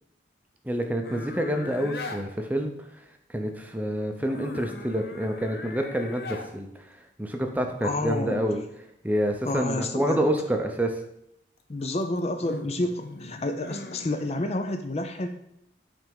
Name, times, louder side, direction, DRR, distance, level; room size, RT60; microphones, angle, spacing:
voice 1, 0.6-11.0, right 1 dB, 10° right, 4 dB, 0.6 m, -28 dB
sound 1, 1.0-2.2 4.2-6.5 11.8-14.5, left 2 dB, 55° left, 0.8 m, -40 dB
voice 2, 7.8-8.5 9.4-10.2 11.7-15.3, left 2 dB, 35° left, 7 dB, 0.4 m, -29 dB
9.1 x 3.4 x 5.2 m, 0.78 s
head